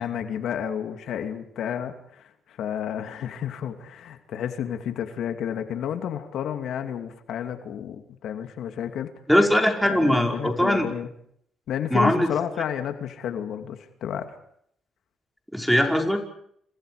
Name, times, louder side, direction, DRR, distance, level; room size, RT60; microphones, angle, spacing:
voice 1, 0.0-9.1 9.8-11.1 11.7-14.4, left 9 dB, 75° left, 7 dB, 2.6 m, -31 dB
voice 2, 9.3-10.9 11.9-12.3 15.5-16.2, equal, ahead, 2 dB, 5.6 m, -20 dB
30.0 x 28.5 x 5.1 m, 0.70 s
cardioid pair, 90°, 0 cm